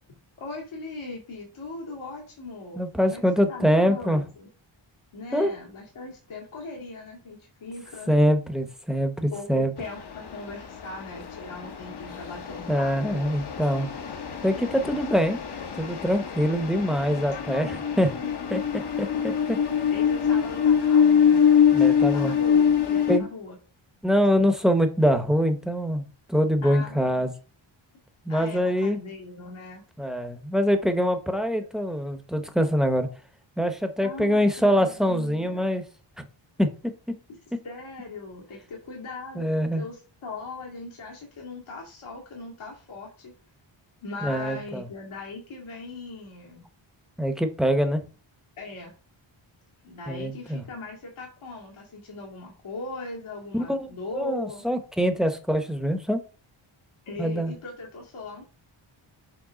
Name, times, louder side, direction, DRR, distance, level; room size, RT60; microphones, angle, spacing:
voice 1, 0.4-4.5 5.1-8.1 9.3-13.2 18.2-18.3 19.9-23.6 26.6-27.3 28.3-29.8 33.6-33.7 34.0-35.7 37.6-43.3 44.0-46.6 48.6-48.9 49.8-54.6 57.1-58.4, left 3 dB, 75° left, -2 dB, 2.1 m, -39 dB
voice 2, 2.8-4.2 5.3-5.5 8.1-9.7 12.7-13.9 14.4-15.4 15.8-18.1 18.5-18.6 19.0-19.1 21.7-22.3 23.1-23.3 24.0-26.0 26.3-27.3 28.2-29.0 30.0-33.1 33.6-35.8 36.2-36.3 36.6-36.7 39.4-39.8 44.2-44.9 47.2-48.0 50.1-50.6 53.5-53.9 54.1-56.2 57.2-57.5, equal, ahead, 8 dB, 0.8 m, -24 dB
sound 1, 9.8-23.2, left 8 dB, 55° left, 1.0 m, -24 dB
7.4 x 3.4 x 5.0 m, 0.36 s
wide cardioid pair, 115°, 49 cm